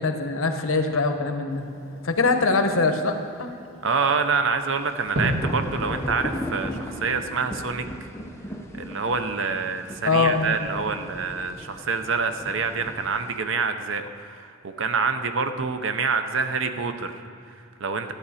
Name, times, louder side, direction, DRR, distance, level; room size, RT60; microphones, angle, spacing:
voice 1, 0.0-1.7 2.0-3.5 10.0-10.6, left 3 dB, 75° left, 6 dB, 0.9 m, -23 dB
Fireworks, 1.5-6.8, equal, 80° right, 2.1 m, -34 dB
voice 2, 3.8-8.1 8.8-18.1, right 5 dB, 65° right, 8 dB, 0.7 m, -27 dB
sound 1, 4.8-13.4, equal, 15° left, 0.7 m, -37 dB
13.5 x 9.3 x 4.2 m, 2.5 s
head